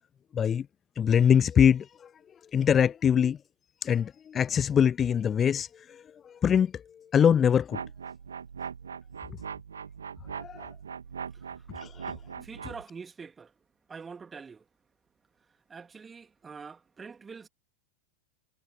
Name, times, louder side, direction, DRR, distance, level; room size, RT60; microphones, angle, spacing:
voice 1, 0.3-0.7 1.0-2.1 2.5-3.4 3.8-6.8 7.1-7.8 10.4-10.7 11.8-12.1, left 8 dB, 25° left, 0.4 m, -23 dB
sound 1, 7.7-12.8, right 6 dB, 70° right, 2.8 m, -40 dB
voice 2, 12.4-13.5 13.9-14.6 15.7-17.5, right 5 dB, 15° right, 2.9 m, -44 dB
figure-of-eight pair, 90°, 0 cm